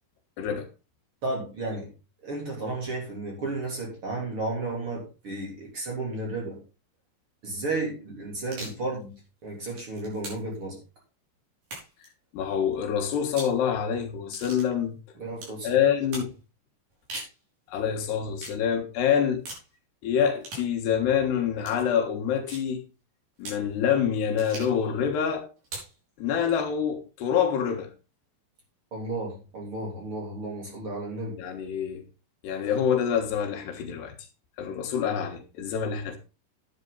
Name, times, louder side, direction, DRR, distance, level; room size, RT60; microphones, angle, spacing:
voice 1, 0.4-0.7 12.3-14.9 15.6-16.3 17.7-19.4 20.0-22.8 23.4-25.5 26.2-27.9 31.4-32.0 32.4-34.1 34.6-36.2, left 8 dB, 75° left, 3.5 m, -26 dB
voice 2, 1.2-1.9 2.2-6.6 7.4-10.8 15.2-15.7 28.9-31.4, right 2 dB, 35° right, 3.6 m, -33 dB
sound 1, 8.4-8.8 9.5-10.6 11.6-12.1 13.2-13.6 14.3-14.7 15.4-15.6 16.1-16.3 16.9-17.4 18.4-18.6 19.5-19.7 20.4-20.7 21.6-21.8 22.5-22.7 23.4-23.7 24.4-24.8 25.6-26.0, right 2 dB, 55° right, 7.0 m, -40 dB
11.5 x 9.0 x 4.0 m
omnidirectional pair, 4.9 m